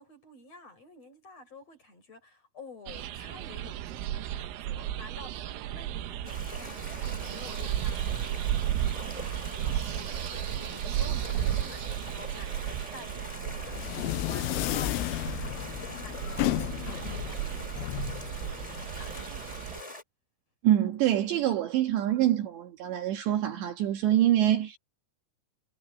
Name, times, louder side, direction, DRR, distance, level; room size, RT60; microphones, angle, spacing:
voice 1, 0.0-19.9, left 2 dB, 30° left, 6.2 m, -50 dB
sound 1, 2.9-19.8, right 12 dB, 85° right, 3.9 m, -34 dB
sound 2, 6.2-20.0, left 2 dB, 10° left, 1.6 m, -44 dB
sound 3, 13.4-19.2, left 21 dB, 85° left, 2.8 m, -33 dB
voice 2, 20.6-24.8, right 12 dB, 65° right, 3.7 m, -25 dB
omnidirectional pair, 5.9 m